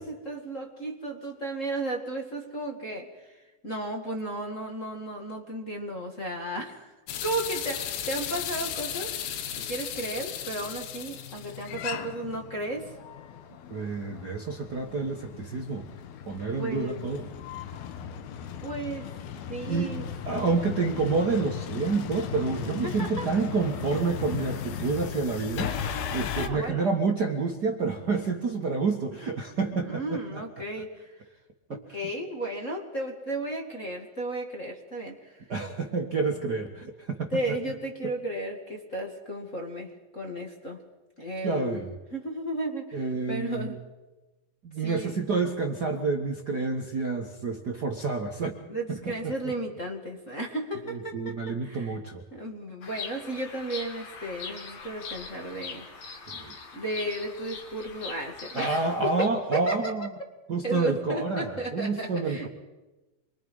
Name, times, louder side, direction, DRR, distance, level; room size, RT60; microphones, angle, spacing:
voice 1, 0.0-6.9 7.2-9.1 9.6-12.9 16.5-17.0 18.6-19.1 19.5-20.0 20.3-20.6 22.8-23.3 26.3-26.9 29.8-31.2 31.7-35.4 37.3-40.8 41.2-41.8 42.1-43.8 44.8-45.2 48.7-52.0 52.3-56.2 56.7-59.9 60.6-62.5, right 1 dB, 30° left, 2 dB, 1.7 m, -34 dB
sound 1, 7.1-26.5, left 9 dB, 80° left, 3.2 m, -36 dB
voice 2, 13.7-15.9 16.3-17.3 19.6-20.0 20.2-30.4 35.5-37.3 41.4-41.9 42.9-43.7 44.6-48.5 48.9-49.3 50.8-52.2 56.3-56.5 58.5-60.1 60.5-62.5, right 4 dB, 80° right, 2 dB, 0.9 m, -29 dB
Bird vocalization bird call bird song, 52.8-59.3, left 5 dB, 50° left, 2.9 m, -42 dB
27.0 x 23.0 x 5.5 m, 1.1 s
omnidirectional pair, 4.3 m